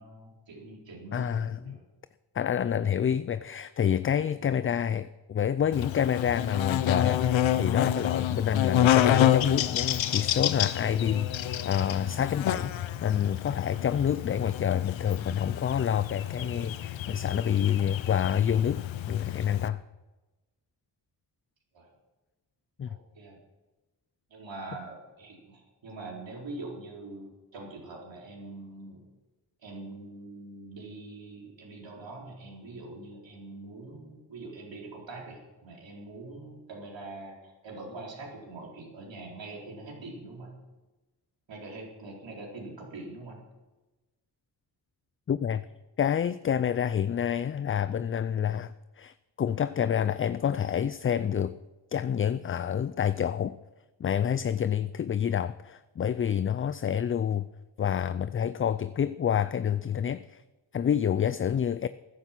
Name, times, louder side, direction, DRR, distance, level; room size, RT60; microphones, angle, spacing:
voice 1, 0.0-1.8 4.4-4.5 21.7-21.9 22.9-23.4 24.3-29.0 29.6-40.5 41.5-43.4, right 2 dB, 70° right, 4.2 m, -43 dB
voice 2, 1.1-1.8 2.3-19.8 22.8-23.0 45.3-45.6 46.0-51.6 51.9-53.6 54.0-57.5 57.8-60.4 60.7-61.9, left 8 dB, 30° left, 0.4 m, -28 dB
Buzz, 5.7-19.7, left 11 dB, 75° left, 0.8 m, -28 dB
14.0 x 10.5 x 5.9 m
cardioid pair, 65°, 46 cm